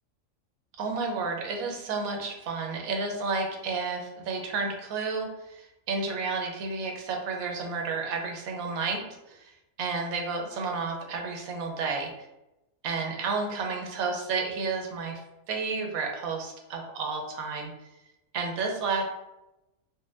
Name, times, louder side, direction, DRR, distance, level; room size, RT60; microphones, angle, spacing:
voice 1, 0.8-9.5 9.8-12.1 12.8-15.2 15.5-17.7 18.3-19.0, right 4 dB, 85° right, 2 dB, 1.1 m, -31 dB
3.9 x 2.1 x 2.5 m, 0.93 s
omnidirectional pair, 1.4 m